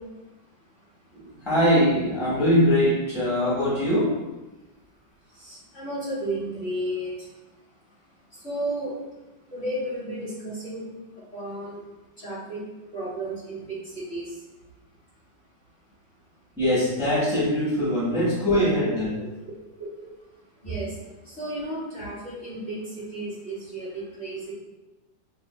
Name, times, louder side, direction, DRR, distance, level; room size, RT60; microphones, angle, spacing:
voice 1, 0.0-1.5 4.9-11.9 12.2-14.5 19.1-19.3 19.8-24.5, right 1 dB, 40° left, -9 dB, 1.5 m, -35 dB
voice 2, 1.1-4.2 16.6-19.1, equal, ahead, -9 dB, 1.0 m, -22 dB
5.5 x 2.7 x 2.2 m, 1.1 s
omnidirectional pair, 2.0 m